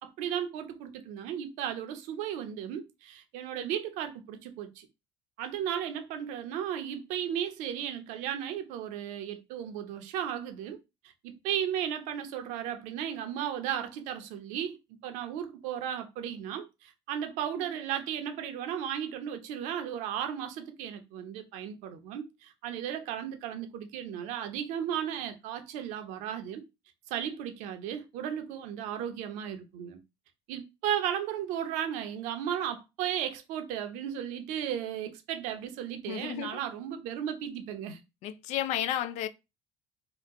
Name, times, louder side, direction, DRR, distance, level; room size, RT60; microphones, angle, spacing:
voice 1, 0.0-4.9 5.4-10.8 11.2-14.8 15.0-26.6 27.1-30.0 30.5-38.0, right 9 dB, 75° right, 0.7 m, -35 dB
voice 2, 36.1-36.5 38.2-39.3, left 11 dB, 65° left, 0.4 m, -32 dB
2.9 x 2.2 x 3.6 m
supercardioid pair, 90°, 13 cm